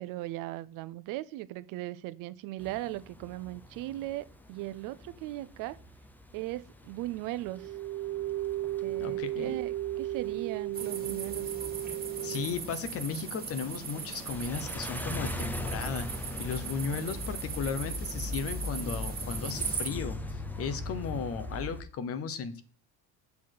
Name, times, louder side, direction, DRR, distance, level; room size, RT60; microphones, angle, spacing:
voice 1, 0.0-5.8 6.3-7.8 8.8-11.5, right 16 dB, 60° right, 0.5 m, -38 dB
sound 1, 2.6-21.8, left 2 dB, 5° left, 0.6 m, -41 dB
sound 2, 7.5-12.5, right 15 dB, 85° right, 1.0 m, -34 dB
voice 2, 9.0-9.6 12.2-16.1 16.4-22.6, left 6 dB, 40° left, 1.0 m, -35 dB
sound 3, 10.7-19.9, right 5 dB, 25° right, 2.1 m, -39 dB
7.1 x 4.0 x 6.5 m
cardioid pair, 145°, 37 cm